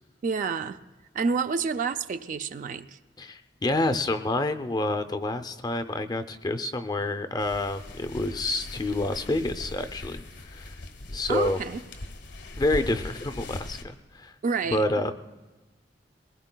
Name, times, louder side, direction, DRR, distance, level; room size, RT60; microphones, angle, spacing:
voice 1, 0.2-0.8 1.1-3.0 11.3-11.8 14.4-15.0, right 5 dB, 45° right, 10 dB, 0.4 m, -29 dB
voice 2, 3.2-10.2 10.5-10.7 11.1-11.6 12.5-14.3 14.7-15.1, left 2 dB, 20° left, 9 dB, 0.5 m, -28 dB
sound 1, 7.4-13.8, left 2 dB, 90° left, 1.2 m, -40 dB
22.0 x 19.5 x 2.2 m, 1.2 s
head